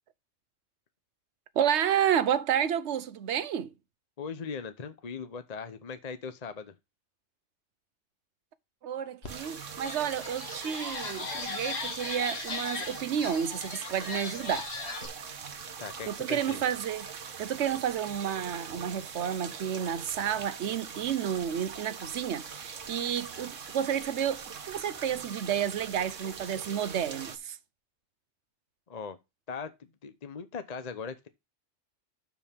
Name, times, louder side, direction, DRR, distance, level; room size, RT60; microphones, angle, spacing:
voice 1, 1.6-3.7 8.8-14.7 16.1-17.1 17.4-27.6, right 9 dB, 65° right, 1.1 m, -30 dB
voice 2, 4.2-6.7 15.8-16.7 28.9-29.2 29.5-29.7 30.0-31.3, left 5 dB, 35° left, 0.8 m, -39 dB
sound 1, 9.2-9.3 9.7-15.1, left 3 dB, 55° left, 1.9 m, -38 dB
sound 2, 9.3-27.4, right 6 dB, 80° right, 1.5 m, -42 dB
12.5 x 4.9 x 3.5 m
omnidirectional pair, 1.3 m